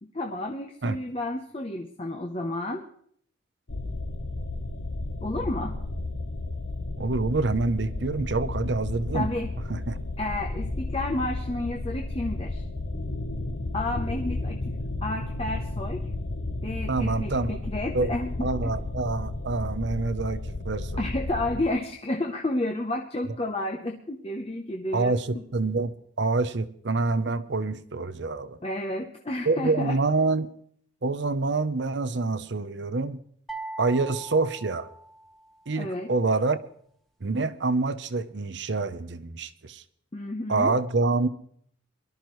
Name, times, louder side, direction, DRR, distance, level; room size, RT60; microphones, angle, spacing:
voice 1, 0.0-2.8 5.2-5.8 9.1-9.5 10.2-12.7 13.7-14.6 15.0-16.1 16.6-18.5 21.0-25.4 28.6-30.0 35.7-36.1 40.1-40.7, left 1 dB, 30° left, 0.7 m, -31 dB
sound 1, 3.7-21.7, left 2 dB, 80° left, 1.0 m, -33 dB
voice 2, 7.0-9.3 9.7-10.0 16.9-17.6 17.9-18.1 18.4-21.0 24.9-28.6 29.5-30.5 31.0-33.2 33.8-34.9 35.7-36.6 37.2-39.8 40.5-41.3, right 3 dB, 60° right, 0.7 m, -26 dB
sound 2, 33.5-35.6, right 2 dB, ahead, 1.1 m, -40 dB
22.5 x 12.5 x 3.1 m
head